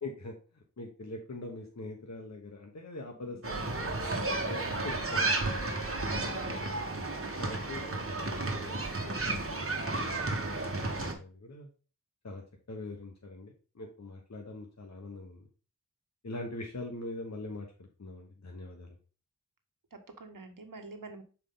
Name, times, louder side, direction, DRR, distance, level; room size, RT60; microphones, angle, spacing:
voice 1, 0.0-4.0 4.5-6.8 7.4-11.7 12.2-12.4 12.7-15.5 16.2-19.0, left 2 dB, 55° left, 1 dB, 1.2 m, -43 dB
voice 2, 3.0-3.4 4.2-4.5 6.0-6.6 19.9-21.2, right 3 dB, 90° right, 6 dB, 1.2 m, -47 dB
sound 1, 3.4-11.1, right 2 dB, 45° right, 1.5 m, -32 dB
6.6 x 4.6 x 3.8 m, 0.36 s
wide cardioid pair, 45°, 32 cm